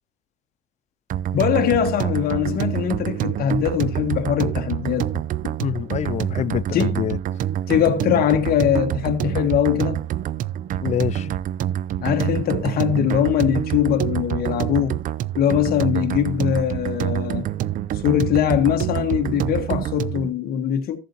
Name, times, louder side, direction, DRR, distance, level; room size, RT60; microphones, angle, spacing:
sound 1, 1.1-20.3, right 11 dB, 50° right, 0.4 m, -26 dB
voice 1, 1.3-5.2 6.7-7.0 7.7-10.0 12.0-15.0 15.4-17.5 18.0-21.0, left 10 dB, 65° left, 1.5 m, -21 dB
voice 2, 5.6-7.2 10.8-11.3, left 10 dB, 45° left, 0.4 m, -26 dB
14.5 x 7.5 x 2.8 m
cardioid pair, 110°, 17 cm